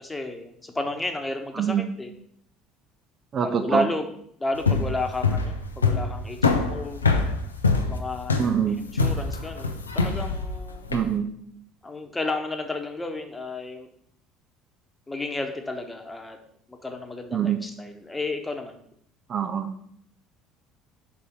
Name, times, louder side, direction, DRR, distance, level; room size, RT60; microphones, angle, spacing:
voice 1, 0.0-2.1 3.4-4.1 4.4-7.0 7.8-8.4 8.7-10.9 11.8-13.9 15.1-16.4 16.7-18.8, left 2 dB, 15° left, 5 dB, 1.2 m, -32 dB
voice 2, 1.6-1.9 3.3-3.8 8.4-8.8 10.9-11.3 17.3-17.6 19.3-19.7, right 8 dB, 40° right, 7 dB, 0.6 m, -24 dB
sound 1, 4.5-11.1, left 4 dB, 85° left, 0.6 m, -24 dB
5.4 x 4.7 x 6.4 m, 0.68 s
figure-of-eight pair, 60°, 0 cm